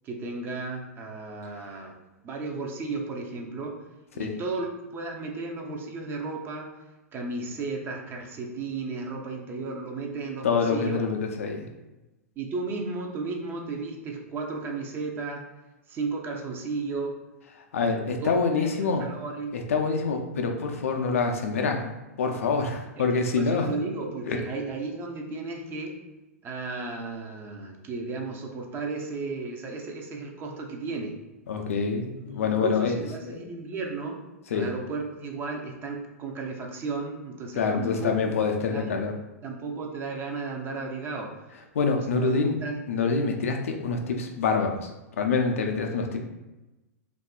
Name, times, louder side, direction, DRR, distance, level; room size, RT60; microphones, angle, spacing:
voice 1, 0.0-1.9 2.2-3.8 4.1-6.7 7.1-11.0 12.4-15.5 15.9-17.2 18.2-19.6 23.4-26.0 26.4-31.2 32.3-34.2 34.5-39.0 39.4-41.4 41.9-42.8, right 3 dB, 25° right, 2 dB, 0.5 m, -34 dB
voice 2, 10.4-11.7 17.6-19.0 19.5-21.9 22.2-23.7 24.3-24.4 31.5-33.4 34.5-34.7 37.6-39.2 41.7-42.6 42.9-46.3, left 4 dB, 65° left, 3 dB, 0.4 m, -26 dB
2.7 x 2.4 x 2.2 m, 1.0 s
figure-of-eight pair, 95°, 8 cm